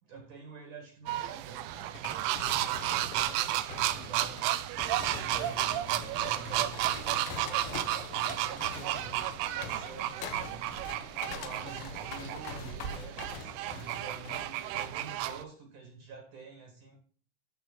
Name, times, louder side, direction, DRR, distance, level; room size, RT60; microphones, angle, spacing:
voice 1, 0.0-1.7 2.5-4.4 5.1-10.7 11.3-17.0, right 4 dB, 60° right, 2 dB, 3.0 m, -48 dB
sound 1, 1.1-15.4, right 14 dB, 80° right, 2.5 m, -33 dB
sound 2, 1.7-14.9, left 7 dB, 70° left, 2.5 m, -44 dB
13.5 x 5.0 x 4.0 m, 0.43 s
omnidirectional pair, 4.6 m